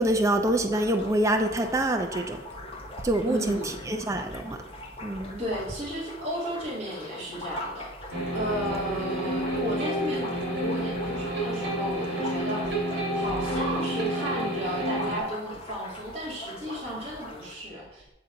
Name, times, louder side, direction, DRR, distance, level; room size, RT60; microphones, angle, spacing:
voice 1, 0.0-2.4 3.0-4.6 5.0-5.4, right 1 dB, 15° right, 5 dB, 0.5 m, -26 dB
sound 1, 0.7-17.6, left 1 dB, 30° left, 0.9 m, -42 dB
voice 2, 3.3-3.7 5.4-7.9 8.3-12.7 13.1-18.0, equal, 35° right, -6 dB, 2.2 m, -34 dB
sound 2, 8.1-15.2, right 1 dB, 75° right, 2.7 m, -29 dB
8.6 x 3.8 x 5.6 m, 0.94 s
head